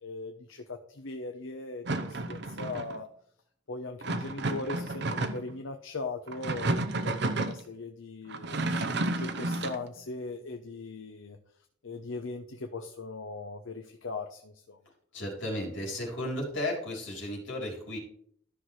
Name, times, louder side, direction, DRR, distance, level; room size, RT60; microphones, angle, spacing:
voice 1, 0.0-3.1 3.7-8.6 9.0-11.4 11.8-14.8, left 3 dB, 85° left, 4 dB, 0.8 m, -39 dB
sound 1, 1.9-3.0 4.0-5.6 6.3-7.6 8.3-9.8, right 2 dB, 60° right, 0.8 m, -31 dB
voice 2, 15.1-18.0, left 1 dB, 70° left, -1 dB, 3.3 m, -34 dB
13.5 x 5.9 x 3.2 m, 0.64 s
head